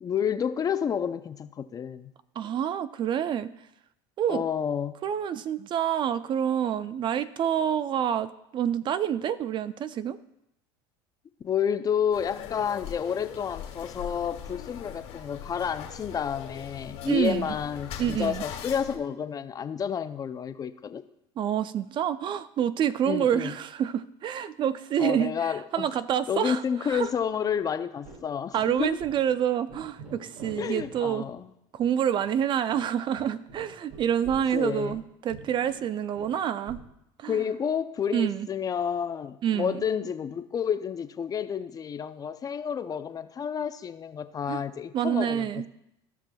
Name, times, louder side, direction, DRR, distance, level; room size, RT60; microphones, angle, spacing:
voice 1, 0.0-2.1 4.3-5.0 11.4-21.0 23.1-23.5 25.0-25.9 26.3-29.0 30.6-31.5 34.5-35.0 37.3-45.7, left 8 dB, 30° left, 12 dB, 0.5 m, -30 dB
voice 2, 2.4-3.5 4.2-4.5 5.0-10.2 17.1-17.5 18.0-18.4 21.4-27.1 28.5-31.3 31.7-36.8 37.2-37.4 38.1-38.5 39.4-39.8 44.5-44.6 44.9-45.7, right 9 dB, 40° right, 15 dB, 0.4 m, -27 dB
sound 1, 12.1-19.0, left 8 dB, 60° left, 1.6 m, -40 dB
sound 2, 26.9-27.3 27.6-27.7 28.0-28.2 28.5-29.4 29.7-31.0 31.2-31.4 31.8-31.9 32.2-32.3 32.7-35.0 35.3-36.9, right 3 dB, 55° right, 2.7 m, -47 dB
15.5 x 6.0 x 2.3 m, 0.83 s
supercardioid pair, 105°, 13 cm